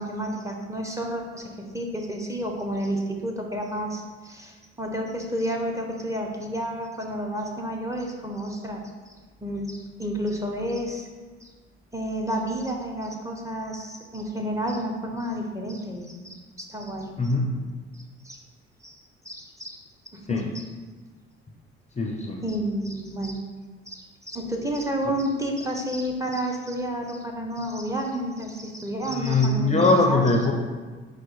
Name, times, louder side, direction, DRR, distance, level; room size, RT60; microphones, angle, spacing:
voice 1, 0.0-8.8 9.4-11.1 11.4-11.5 11.9-17.3 18.2-18.4 18.8-19.0 19.2-19.8 20.1-20.6 22.4-23.4 23.9-30.5, right 1 dB, 10° right, 1 dB, 0.8 m, -30 dB
voice 2, 17.2-17.5 20.3-20.4 22.0-22.4 29.2-30.5, left 3 dB, 20° left, 1 dB, 0.5 m, -21 dB
4.5 x 2.2 x 4.7 m, 1.4 s
hypercardioid pair, 50°, 32 cm